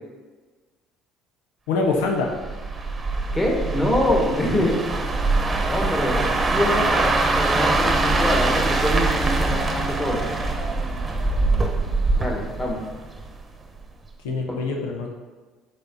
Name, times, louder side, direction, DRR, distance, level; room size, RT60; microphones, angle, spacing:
voice 1, 1.7-2.4 14.2-15.1, left 3 dB, 90° left, 1 dB, 0.7 m, -24 dB
sound 1, 2.3-13.4 13.8-14.1, right 3 dB, 25° right, 1.0 m, -23 dB
voice 2, 3.3-4.8 5.7-10.2 12.2-12.8 14.5-14.6, left 1 dB, 20° left, -1 dB, 2.0 m, -24 dB
6.7 x 4.2 x 4.0 m, 1.3 s
supercardioid pair, 75°, 0 cm